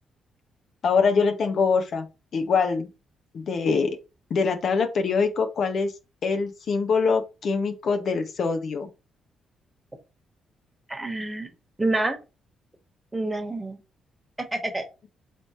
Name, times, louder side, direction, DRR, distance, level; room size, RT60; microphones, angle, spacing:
voice 1, 0.8-2.1 2.3-2.9 3.3-4.0 4.3-5.9 6.2-8.9, left 5 dB, 60° left, 7 dB, 0.7 m, -24 dB
voice 2, 10.9-11.5 11.8-12.2 13.1-13.8 14.4-14.8, right 2 dB, 15° right, 5 dB, 1.2 m, -27 dB
3.3 x 2.9 x 4.2 m, 0.29 s
hypercardioid pair, 45°, 0 cm